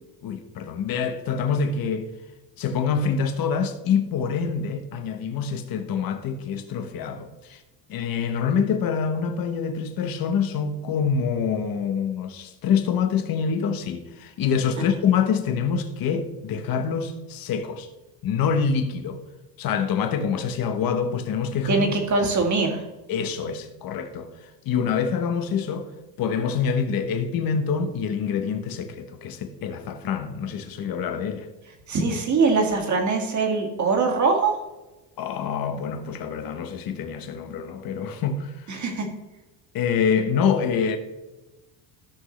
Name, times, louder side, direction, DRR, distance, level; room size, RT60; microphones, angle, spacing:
voice 1, 0.2-2.1 2.6-7.6 7.9-17.9 18.2-19.2 19.6-21.8 23.1-25.9 26.2-31.5 35.2-38.7 39.7-41.0, left 6 dB, 50° left, 1.2 m, -26 dB
voice 2, 21.7-22.8 31.9-34.6 38.7-39.1, right 4 dB, 40° right, 2.1 m, -22 dB
14.5 x 6.2 x 3.2 m
cardioid pair, 130°, 46 cm